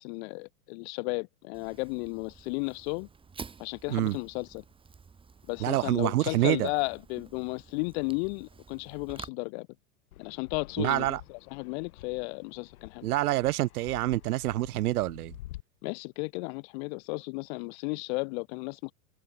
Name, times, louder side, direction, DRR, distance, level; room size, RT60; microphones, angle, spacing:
voice 1, 0.0-3.1 3.6-4.6 5.5-9.7 10.2-13.1 15.8-18.9, left 31 dB, 45° left, 1.1 m, -34 dB
Fire, 1.5-9.3, right 5 dB, 10° right, 2.2 m, -50 dB
voice 2, 5.6-6.7 10.8-11.2 13.0-15.3, right 16 dB, 85° right, 0.8 m, -27 dB
Fixed-wing aircraft airplane, 10.1-15.6, left 16 dB, 75° left, 2.9 m, -49 dB
supercardioid pair, 145°, 44 cm